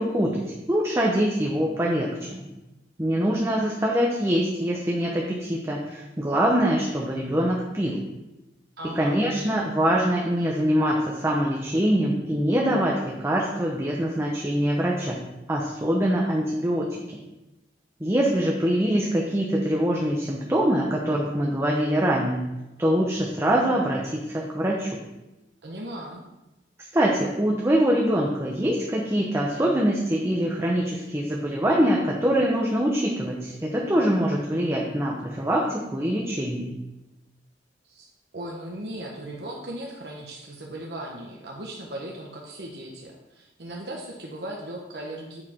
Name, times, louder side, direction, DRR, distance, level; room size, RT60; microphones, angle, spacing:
voice 1, 0.0-2.5 3.0-8.0 9.0-15.2 15.5-17.0 18.0-22.5 22.8-25.0 26.9-36.7, equal, 15° right, -2 dB, 0.8 m, -24 dB
voice 2, 8.8-9.2 25.6-26.2 37.8-45.4, right 1 dB, 65° right, -1 dB, 1.0 m, -37 dB
8.6 x 4.9 x 4.3 m, 0.99 s
head